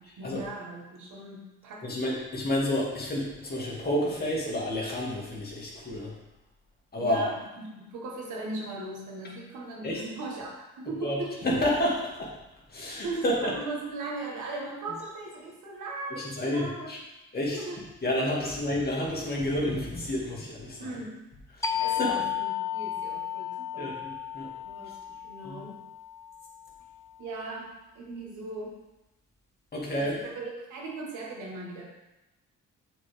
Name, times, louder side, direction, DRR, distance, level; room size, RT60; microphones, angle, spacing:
voice 1, 0.0-1.9 7.0-11.4 13.0-17.0 17.5-17.8 20.8-21.2 21.8-24.0 24.6-25.8 27.2-28.8 29.9-31.9, right 2 dB, 80° right, -2 dB, 1.8 m, -38 dB
voice 2, 1.8-6.1 6.9-7.2 9.8-10.0 11.0-12.3 12.7-13.5 16.2-17.0 17.3-17.6 18.0-20.9 21.6-22.2 23.8-24.5 25.4-25.6 29.7-30.2, left 1 dB, 30° left, -4 dB, 2.3 m, -30 dB
sound 1, 21.6-26.9, left 9 dB, 10° left, 0.6 m, -33 dB
7.6 x 4.6 x 3.5 m, 0.98 s
cardioid pair, 90°, 30 cm